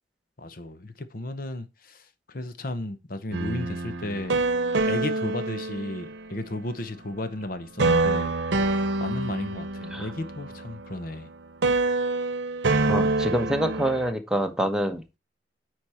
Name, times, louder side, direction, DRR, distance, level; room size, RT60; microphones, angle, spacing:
voice 1, 0.4-4.4 4.8-8.3 9.0-11.3, left 2 dB, 50° left, 0.9 m, -34 dB
sound 1, 3.3-6.5 7.8-11.3 11.6-14.1, right 2 dB, 85° right, 0.8 m, -26 dB
voice 2, 12.9-15.0, equal, 5° right, 1.0 m, -26 dB
8.4 x 4.7 x 4.3 m
head